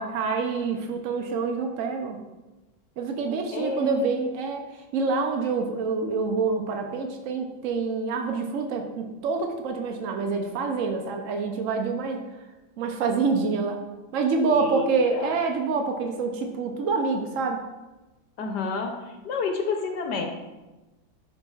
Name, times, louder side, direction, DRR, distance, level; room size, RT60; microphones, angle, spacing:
voice 1, 0.0-2.2 3.0-4.7 4.9-12.2 12.8-13.8 14.1-17.6, right 4 dB, 75° right, 4 dB, 0.7 m, -26 dB
voice 2, 3.5-4.2 14.5-15.3 18.4-18.9 19.2-20.3, left 4 dB, 65° left, 4 dB, 1.3 m, -29 dB
11.0 x 5.3 x 2.4 m, 1.1 s
omnidirectional pair, 2.1 m